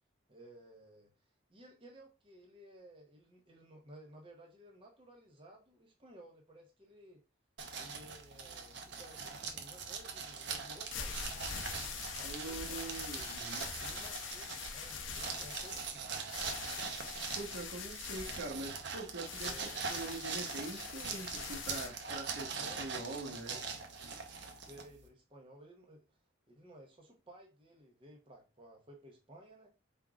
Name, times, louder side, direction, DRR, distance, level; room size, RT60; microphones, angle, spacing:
voice 1, 0.3-1.1 1.5-7.2 7.8-11.5 12.2-13.5 13.8-16.1 19.5-19.8 22.6-22.8 23.3-23.7 24.7-26.1 26.5-29.7, right 1 dB, 25° right, 0.9 m, -56 dB
sound 1, 7.6-25.1, right 5 dB, 60° right, 0.8 m, -42 dB
sound 2, 10.9-21.9, left 6 dB, 80° left, 0.7 m, -44 dB
voice 2, 12.2-13.7 17.4-19.6 19.9-22.5 22.8-23.6, right 2 dB, 80° right, 1.2 m, -44 dB
4.5 x 3.7 x 2.4 m
head